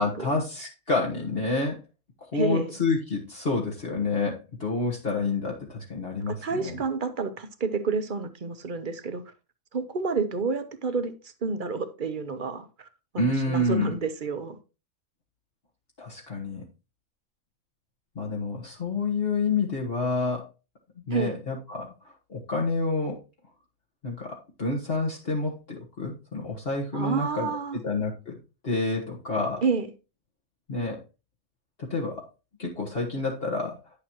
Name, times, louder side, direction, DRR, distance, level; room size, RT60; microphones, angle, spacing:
voice 1, 0.0-1.8 2.3-6.8 13.2-13.9 16.0-16.6 18.2-20.5 21.1-23.2 24.0-27.5 27.8-28.4 28.6-29.6 30.7-31.0 31.8-32.2 32.6-33.8, left 3 dB, 50° left, 1.6 m, -28 dB
voice 2, 2.3-2.7 6.3-9.2 9.7-12.9 13.1-14.6 21.1-21.4 26.9-27.8 29.6-29.9, right 4 dB, 45° right, 0.9 m, -29 dB
9.9 x 6.8 x 3.0 m
omnidirectional pair, 1.3 m